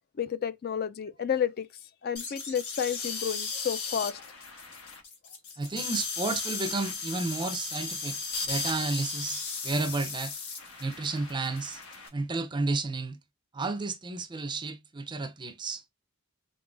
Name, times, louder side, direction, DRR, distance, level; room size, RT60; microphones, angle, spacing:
voice 1, 0.2-1.7 2.0-4.3, left 8 dB, 45° left, 0.4 m, -31 dB
sound 1, 2.2-12.1, left 4 dB, 90° left, 1.2 m, -36 dB
voice 2, 5.6-8.2 8.5-10.3 10.8-11.8 12.1-13.2 13.5-15.8, right 3 dB, 20° right, 0.5 m, -32 dB
3.8 x 3.8 x 2.4 m
head